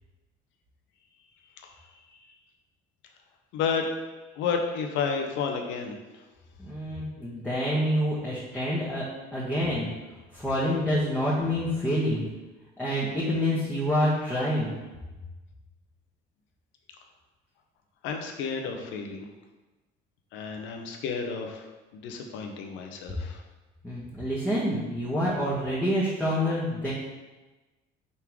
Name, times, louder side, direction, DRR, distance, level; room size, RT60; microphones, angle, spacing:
voice 1, 3.5-3.8 4.4-6.0 18.0-19.3 20.3-21.7 21.9-23.4, left 5 dB, 75° left, 3 dB, 0.9 m, -31 dB
voice 2, 6.7-9.0 9.3-9.9 10.3-12.2 12.8-14.7 23.8-26.9, equal, 5° left, -8 dB, 1.5 m, -27 dB
5.5 x 3.6 x 4.7 m, 1.2 s
supercardioid pair, 95°, 20 cm